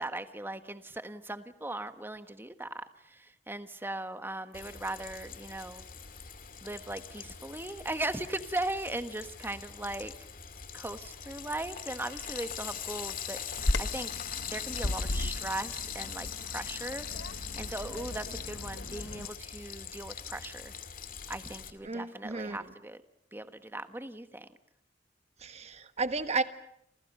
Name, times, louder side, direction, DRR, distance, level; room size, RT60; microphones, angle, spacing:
voice 1, 0.0-5.9 6.6-10.1 10.7-14.1 14.4-20.7 21.3-23.0 23.3-24.5, right 2 dB, 15° right, 10 dB, 1.4 m, -38 dB
Frying (food), 4.5-21.7, left 8 dB, 50° left, 2.2 m, -42 dB
Bird vocalization bird call bird song, 13.6-19.3, left 1 dB, 75° left, 1.2 m, -36 dB
voice 2, 21.8-22.6 25.4-26.4, right 3 dB, 40° right, 10 dB, 1.5 m, -33 dB
28.5 x 28.5 x 5.6 m, 0.72 s
head